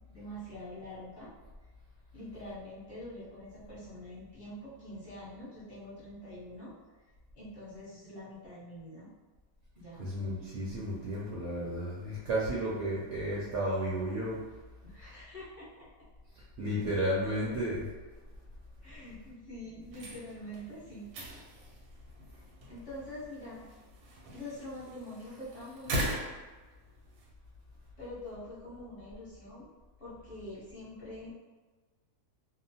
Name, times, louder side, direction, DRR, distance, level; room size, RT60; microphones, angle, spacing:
voice 1, 0.1-1.3 2.1-6.7 7.3-9.1 9.7-10.1 14.8-15.9 18.8-21.1 22.7-23.6 24.3-26.2 28.0-29.7 30.0-31.3, left 1 dB, 40° left, -9 dB, 1.0 m, -45 dB
voice 2, 10.0-14.4 16.6-17.9, right 1 dB, 65° right, -6 dB, 0.7 m, -32 dB
sound 1, 19.8-27.3, right 1 dB, 85° right, 1.2 m, -41 dB
2.8 x 2.1 x 2.7 m, 1.3 s
omnidirectional pair, 1.7 m